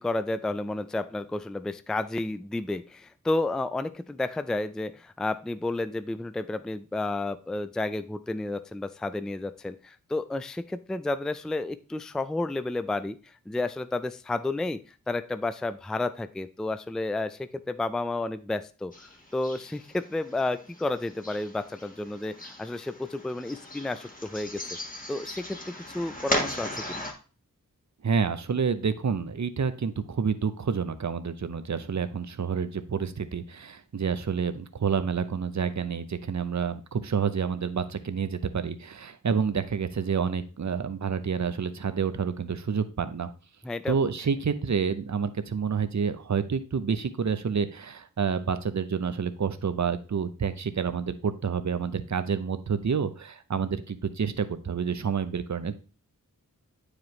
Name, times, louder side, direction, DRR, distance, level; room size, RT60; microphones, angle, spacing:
voice 1, 0.0-14.8 15.1-18.9 19.3-24.6 25.1-27.1 43.6-44.0, left 2 dB, ahead, 12 dB, 0.4 m, -31 dB
sound 1, 18.9-27.1, left 1 dB, 25° left, 1.4 m, -37 dB
voice 2, 28.0-43.3 43.9-55.8, right 6 dB, 55° right, 11 dB, 0.7 m, -29 dB
9.0 x 4.9 x 3.1 m, 0.36 s
wide cardioid pair, 55°, 34 cm